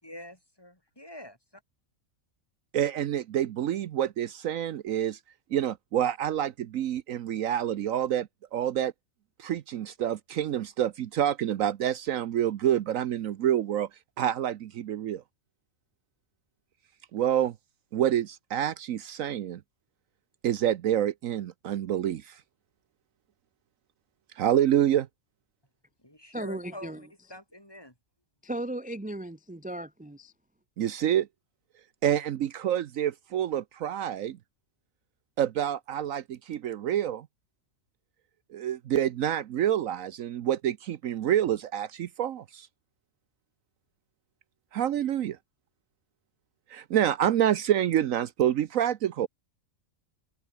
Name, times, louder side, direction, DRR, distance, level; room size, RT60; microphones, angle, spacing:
voice 1, 0.0-1.3 26.0-27.9, left 1 dB, 15° left, 5.6 m, -46 dB
voice 2, 2.7-5.2 5.5-8.9 9.4-13.9 14.2-15.2 17.1-17.5 17.9-19.6 20.4-22.4 24.4-25.1 30.8-31.3 32.0-34.4 35.4-37.3 38.5-42.7 44.7-45.4 46.7-49.3, right 10 dB, 75° right, 1.1 m, -27 dB
voice 3, 26.3-27.1 28.4-30.3, right 1 dB, 5° right, 0.8 m, -36 dB
omnidirectional pair, 1.4 m